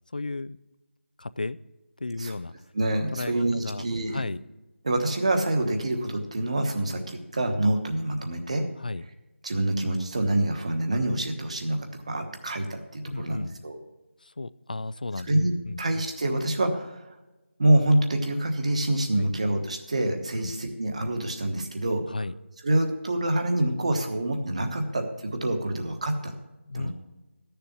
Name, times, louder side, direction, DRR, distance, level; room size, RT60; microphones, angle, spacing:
voice 1, 0.1-0.6 1.2-1.6 2.0-2.5 3.2-3.9 4.1-4.4 8.8-9.0 13.1-13.5 14.4-15.3 15.7-15.8 19.2-19.3 20.4-20.5 22.1-22.3 26.7-26.9, left 2 dB, 40° left, 17 dB, 0.3 m, -33 dB
voice 2, 2.7-4.2 4.8-8.7 9.4-13.8 15.3-17.0 17.6-22.0 22.6-26.3 26.7-26.9, right 1 dB, 30° right, 5 dB, 1.1 m, -26 dB
12.0 x 6.9 x 7.1 m, 1.1 s
figure-of-eight pair, 175°, 7 cm